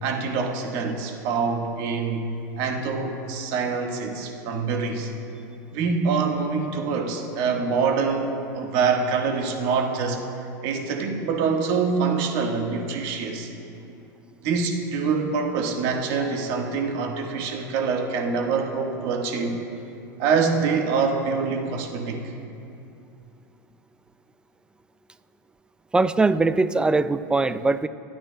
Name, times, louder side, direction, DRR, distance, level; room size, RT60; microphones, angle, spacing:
voice 1, 0.0-2.3 2.6-5.1 5.7-10.2 10.6-13.5 14.4-19.6 20.2-22.2, right 5 dB, 60° right, 2 dB, 1.5 m, -25 dB
voice 2, 25.9-27.9, right 3 dB, 10° right, 14 dB, 0.3 m, -21 dB
28.0 x 9.5 x 2.3 m, 2.7 s
hypercardioid pair, 110°, 10 cm